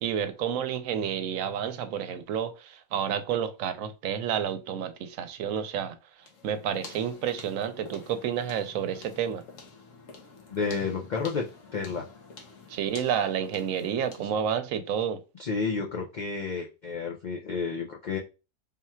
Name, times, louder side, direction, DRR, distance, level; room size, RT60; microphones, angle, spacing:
voice 1, 0.0-6.0 6.4-9.4 12.7-15.2, right 8 dB, 80° right, 1.0 m, -30 dB
sound 1, 6.2-14.4, left 4 dB, 70° left, 1.3 m, -48 dB
voice 2, 10.5-11.4 11.7-12.0 15.4-18.2, left 5 dB, 55° left, 0.5 m, -31 dB
3.7 x 2.3 x 4.3 m
omnidirectional pair, 1.4 m